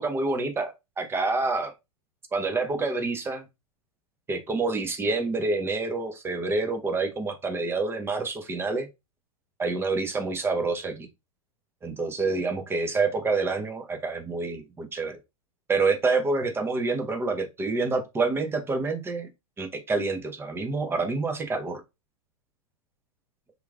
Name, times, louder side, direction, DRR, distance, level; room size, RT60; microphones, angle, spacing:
voice 1, 0.0-1.7 2.3-3.5 4.3-8.9 9.6-11.1 11.8-15.2 15.7-19.3 19.6-21.8, right 3 dB, 15° right, 0.5 m, -27 dB
3.0 x 2.4 x 2.2 m
hypercardioid pair, 105°, 18 cm